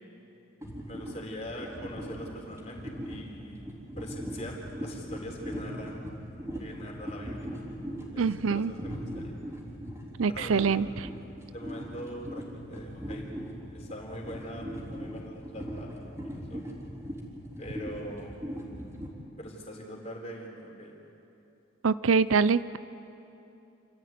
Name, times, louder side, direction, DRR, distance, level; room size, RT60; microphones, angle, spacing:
sound 1, 0.6-19.1, equal, 15° right, 3.8 m, -40 dB
voice 1, 0.9-3.7 4.0-6.0 6.6-7.5 8.1-9.3 10.3-10.6 11.5-13.4 13.7-16.6 17.6-18.3 19.4-21.1, equal, 35° left, -1 dB, 4.1 m, -42 dB
voice 2, 8.2-8.7 10.2-11.1 21.8-22.8, right 5 dB, 80° right, 16 dB, 0.5 m, -25 dB
28.0 x 14.0 x 9.4 m, 2.9 s
head